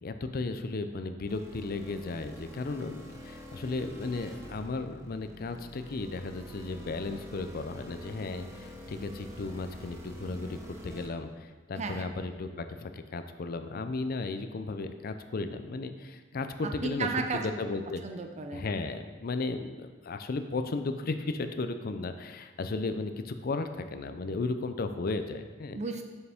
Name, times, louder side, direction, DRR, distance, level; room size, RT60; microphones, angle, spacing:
voice 1, 0.0-17.1 17.4-18.0 18.5-25.8, left 3 dB, 50° left, 9 dB, 0.5 m, -35 dB
sound 1, 1.3-11.1, equal, 15° right, 1.0 m, -46 dB
voice 2, 11.8-12.1 16.6-17.5 18.0-18.7 25.7-26.0, right 4 dB, 35° right, 5 dB, 0.5 m, -34 dB
6.8 x 6.7 x 3.5 m, 1.3 s
head